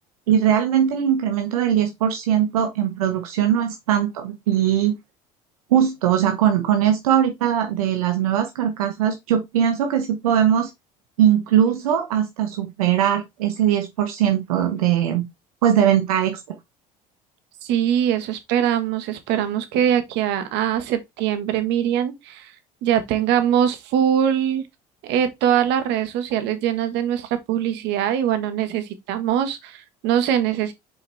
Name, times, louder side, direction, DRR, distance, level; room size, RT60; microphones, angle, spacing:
voice 1, 0.3-4.9 5.7-10.7 11.2-15.2 15.6-16.4, right 9 dB, 90° right, 0.9 m, -20 dB
voice 2, 17.6-22.5 22.8-24.6 25.0-30.7, right 10 dB, 70° right, 1.4 m, -22 dB
6.5 x 5.0 x 3.3 m
hypercardioid pair, 70°, 18 cm